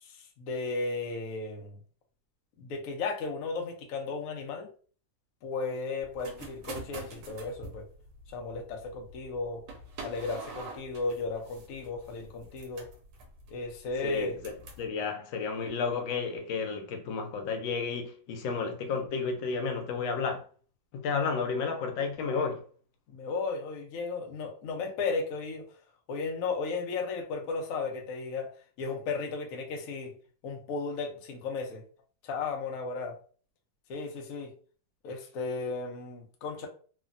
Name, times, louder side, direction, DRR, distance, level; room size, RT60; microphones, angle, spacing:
voice 1, 0.0-1.8 2.6-4.7 5.4-7.8 8.3-9.6 10.0-12.9 13.5-14.4 23.1-25.7 26.1-28.5 28.8-30.1 30.4-31.8 32.2-33.2 33.9-34.5 35.0-36.7, left 4 dB, 65° left, 0.9 m, -35 dB
sound 1, 6.0-14.9, right 2 dB, 80° right, 1.3 m, -47 dB
voice 2, 14.0-20.4 20.9-22.6, left 5 dB, 85° left, 1.3 m, -32 dB
3.3 x 2.1 x 2.5 m
omnidirectional pair, 2.0 m